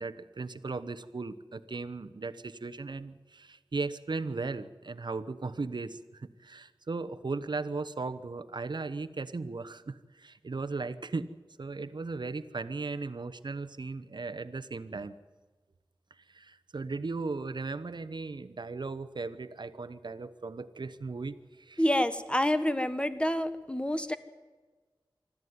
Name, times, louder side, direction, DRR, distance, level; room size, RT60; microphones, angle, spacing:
voice 1, 0.0-11.3 11.6-15.1 16.1-21.8, right 3 dB, 60° right, 12 dB, 1.0 m, -37 dB
voice 2, 21.8-24.2, left 1 dB, 10° left, 11 dB, 1.3 m, -28 dB
25.0 x 13.5 x 9.6 m, 1.3 s
wide cardioid pair, 80°, 9 cm